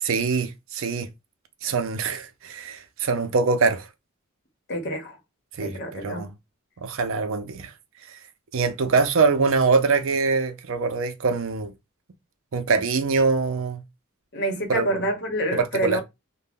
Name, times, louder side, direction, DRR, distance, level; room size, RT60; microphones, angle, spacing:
voice 1, 0.0-1.1 1.6-3.9 5.5-6.3 6.8-7.7 8.5-11.7 12.5-13.8 14.7-15.0 15.5-16.0, right 4 dB, 65° right, 0.5 m, -23 dB
voice 2, 4.7-5.2 5.6-6.3 14.3-16.0, right 1 dB, 55° left, 0.9 m, -27 dB
2.5 x 2.1 x 3.4 m
head